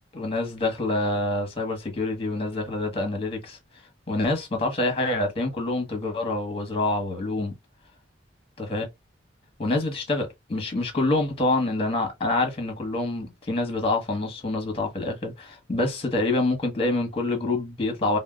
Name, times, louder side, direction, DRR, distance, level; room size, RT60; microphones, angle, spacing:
voice 1, 0.1-3.6 4.1-7.5 8.6-8.9 9.6-18.2, left 2 dB, 30° left, 1.0 m, -26 dB
4.3 x 2.1 x 2.3 m
head